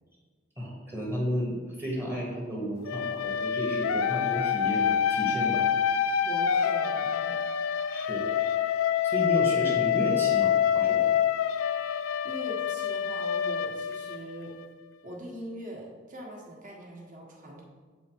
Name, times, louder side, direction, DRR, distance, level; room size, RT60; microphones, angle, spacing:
voice 1, 0.6-5.6 7.8-8.2 9.0-11.1, right 1 dB, 10° right, -3 dB, 1.2 m, -33 dB
sound 1, 2.8-14.7, left 8 dB, 80° left, 0.3 m, -26 dB
voice 2, 6.2-7.4 12.2-14.5 15.0-17.6, right 1 dB, 40° right, -2 dB, 1.4 m, -42 dB
7.6 x 4.1 x 4.5 m, 1.5 s
head